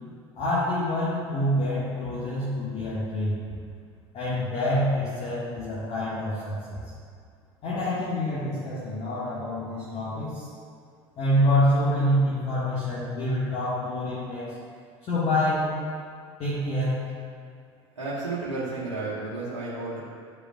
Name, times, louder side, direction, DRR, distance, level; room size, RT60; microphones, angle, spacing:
voice 1, 0.4-3.4 4.1-6.8 7.6-10.5 11.2-14.6 15.0-15.8 16.4-17.1, left 1 dB, 45° left, -9 dB, 1.9 m, -26 dB
voice 2, 18.0-20.0, right 3 dB, 85° right, -10 dB, 1.1 m, -32 dB
13.0 x 5.1 x 2.5 m, 2.1 s
figure-of-eight pair, 70°, 15 cm